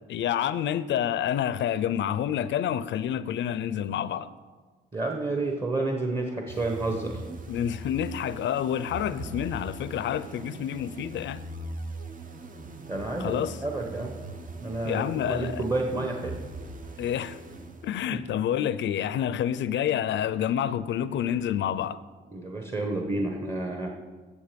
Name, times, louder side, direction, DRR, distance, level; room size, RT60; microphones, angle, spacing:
voice 1, 0.1-4.3 7.5-11.4 13.2-13.6 14.8-15.6 17.0-17.4 17.8-22.0, left 10 dB, 70° left, 15 dB, 0.6 m, -28 dB
voice 2, 4.9-7.2 12.9-14.1 14.6-16.4 22.3-23.9, right 2 dB, 25° right, 2 dB, 1.2 m, -30 dB
sound 1, 6.5-18.2, right 2 dB, 40° right, 1.0 m, -41 dB
13.5 x 7.2 x 5.2 m, 1.4 s
cardioid pair, 90°, 20 cm